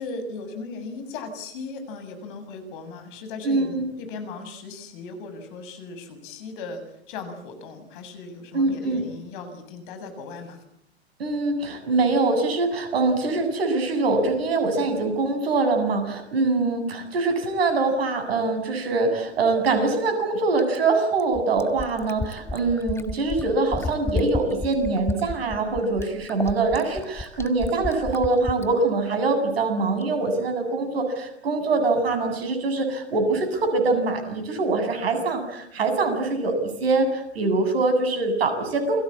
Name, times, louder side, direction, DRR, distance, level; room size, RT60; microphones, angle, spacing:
voice 1, 0.0-6.8 7.1-10.6, left 3 dB, 50° left, 9 dB, 7.2 m, -37 dB
voice 2, 3.4-3.9 8.5-9.0 11.2-39.0, right 3 dB, 65° right, 8 dB, 7.9 m, -23 dB
Fill (with liquid), 20.6-28.7 30.0-30.1, left 3 dB, 10° left, 1.6 m, -32 dB
29.0 x 22.5 x 8.6 m, 0.77 s
figure-of-eight pair, 95°, 32 cm